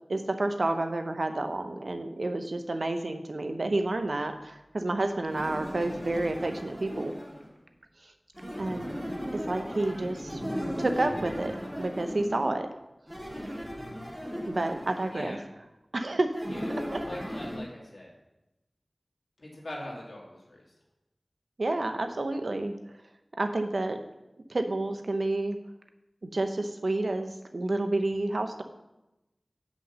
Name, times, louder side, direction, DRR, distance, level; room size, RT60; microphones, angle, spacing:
voice 1, 0.1-7.1 8.6-8.9 9.5-10.4 10.8-12.7 14.5-15.4 15.9-16.3 16.7-17.0 21.6-22.7 23.4-24.0 24.5-25.6 26.3-28.6, right 2 dB, 75° right, 7 dB, 0.7 m, -30 dB
sound 1, 5.3-7.5 8.3-12.5 13.1-15.2 16.3-17.6, equal, 15° right, 2.9 m, -36 dB
voice 2, 15.1-15.4 16.5-18.1 19.4-20.7, left 1 dB, 75° left, -3 dB, 2.3 m, -42 dB
6.3 x 5.4 x 6.7 m, 0.95 s
wide cardioid pair, 55°, 0 cm